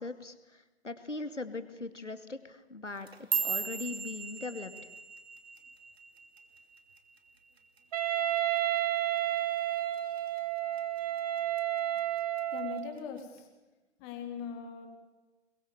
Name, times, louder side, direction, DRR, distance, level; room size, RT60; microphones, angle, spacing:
voice 1, 0.0-4.7, left 3 dB, 85° left, 9 dB, 2.7 m, -40 dB
sound 1, 2.9-7.3 7.6-8.0 8.4-8.8 9.2-9.4 10.0-10.4 10.8-11.6 12.0-12.4 13.2-13.3, right 6 dB, 60° right, 3.0 m, -37 dB
Wind instrument woodwind instrument, 7.9-12.9, right 13 dB, 35° right, 2.4 m, -31 dB
voice 2, 12.5-13.5 14.0-14.9, left 7 dB, 20° left, 4 dB, 3.6 m, -40 dB
25.5 x 22.5 x 7.4 m, 1.1 s
figure-of-eight pair, 140°, 36 cm